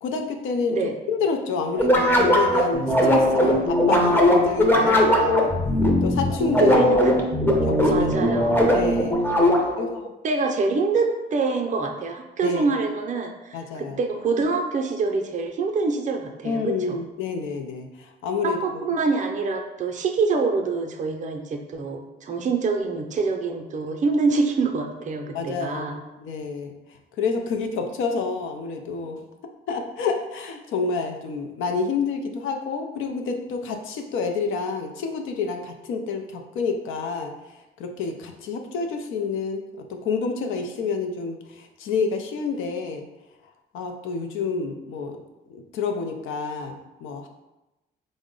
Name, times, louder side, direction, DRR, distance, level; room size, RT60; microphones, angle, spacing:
voice 1, 0.0-0.8 1.1-5.5 6.0-6.8 7.6-8.4 8.7-9.2 9.8-10.1 12.4-12.7 13.5-14.0 16.4-18.6 25.3-26.7 27.2-29.2 29.7-37.3 37.8-43.0 43.7-45.2 45.5-47.3, left 4 dB, 85° left, 5 dB, 0.5 m, -28 dB
sound 1, 1.8-9.9, left 1 dB, 10° left, 0.6 m, -19 dB
voice 2, 6.6-7.2 7.9-8.6 9.5-9.9 10.2-17.0 18.4-26.0, right 4 dB, 40° right, 4 dB, 0.5 m, -25 dB
3.8 x 2.1 x 3.7 m, 1.0 s
cardioid pair, 90°, 20 cm